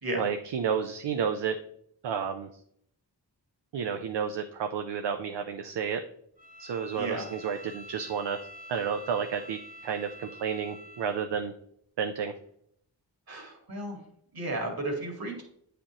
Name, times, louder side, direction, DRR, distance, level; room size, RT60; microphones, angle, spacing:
voice 1, 0.2-1.6 2.0-2.5 3.7-6.0 6.6-8.4 8.7-11.5 12.0-12.3, right 7 dB, 75° right, 6 dB, 0.6 m, -31 dB
Bowed string instrument, 6.4-11.2, equal, 20° right, 0.7 m, -47 dB
voice 2, 6.9-7.3 13.3-14.0 14.3-15.4, right 2 dB, 55° right, 1 dB, 2.0 m, -33 dB
8.3 x 5.1 x 2.9 m, 0.69 s
wide cardioid pair, 65°, 42 cm